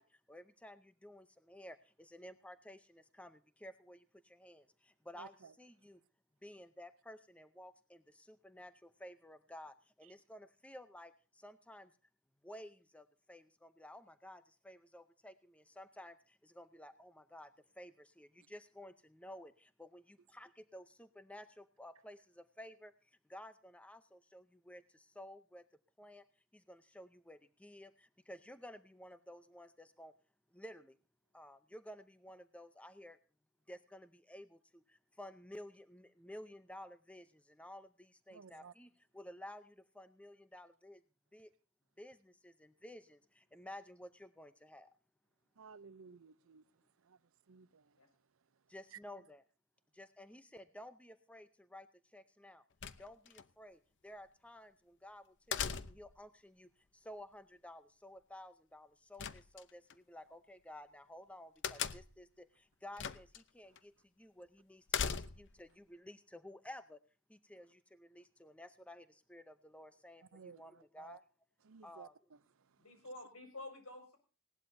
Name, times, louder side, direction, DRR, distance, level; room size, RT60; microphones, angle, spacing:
voice 1, 0.0-6.0 6.4-11.9 12.4-25.6 26.0-26.3 26.5-30.1 30.5-31.0 31.3-33.2 33.7-41.0 41.3-41.5 42.0-44.9 48.7-49.4 49.9-52.6 53.0-67.0 67.3-71.2 71.8-72.1, left 1 dB, 5° left, 0.6 m, -54 dB
voice 2, 5.2-5.5 38.3-38.7 45.6-46.6 47.0-47.2 47.5-47.9 48.9-49.0 70.3-71.2 71.6-72.1, right 6 dB, 65° right, 0.6 m, -55 dB
sound 1, 52.8-53.4 55.5-56.2 59.2-59.9 61.6-62.3 63.0-63.4 63.8-63.9 64.9-65.6, left 7 dB, 55° left, 0.8 m, -39 dB
voice 3, 72.8-74.2, left 2 dB, 75° left, 5.8 m, -50 dB
19.5 x 17.5 x 2.7 m
head